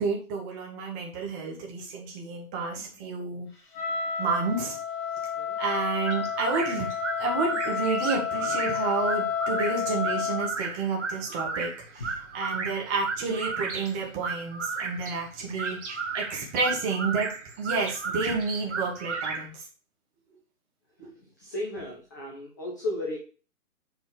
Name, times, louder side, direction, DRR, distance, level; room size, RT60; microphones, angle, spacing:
voice 1, 0.0-3.5 4.2-4.8 5.6-6.9 7.2-17.3 17.6-19.6 21.0-21.1, right 4 dB, 15° right, 0 dB, 1.3 m, -30 dB
Wind instrument woodwind instrument, 3.7-10.5, left 7 dB, 30° left, 2.9 m, -30 dB
sound 1, 6.1-19.5, right 4 dB, 50° right, 1.9 m, -34 dB
voice 2, 21.4-23.2, left 1 dB, 15° left, -3 dB, 0.7 m, -34 dB
7.9 x 4.4 x 5.0 m, 0.35 s
figure-of-eight pair, 140°, 46 cm